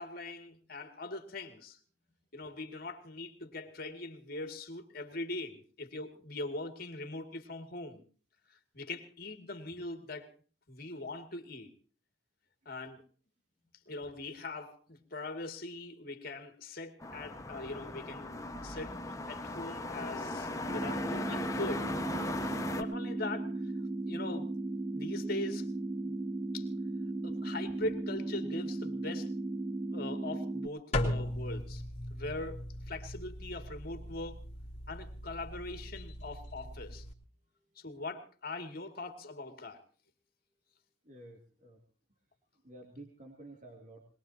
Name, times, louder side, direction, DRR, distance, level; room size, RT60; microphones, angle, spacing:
voice 1, 0.0-1.8 2.3-8.0 8.5-10.3 10.7-11.7 12.7-13.0 13.9-18.3 18.6-19.0 19.3-21.9 22.4-23.7 24.1-24.5 24.9-25.7 26.0-26.1 26.5-26.7 27.2-29.3 29.9-31.8 32.1-34.4 34.9-37.1 37.8-39.8, left 2 dB, 50° left, 7 dB, 2.5 m, -41 dB
sound 1, 17.0-22.8, left 2 dB, 15° left, 1.4 m, -38 dB
sound 2, 20.7-30.7, right 2 dB, 15° right, 0.8 m, -36 dB
sound 3, 30.9-37.1, left 1 dB, 35° left, 3.2 m, -38 dB
voice 2, 41.0-41.8 42.6-44.1, right 1 dB, 40° right, 1 dB, 2.9 m, -51 dB
22.0 x 21.5 x 2.9 m, 0.39 s
head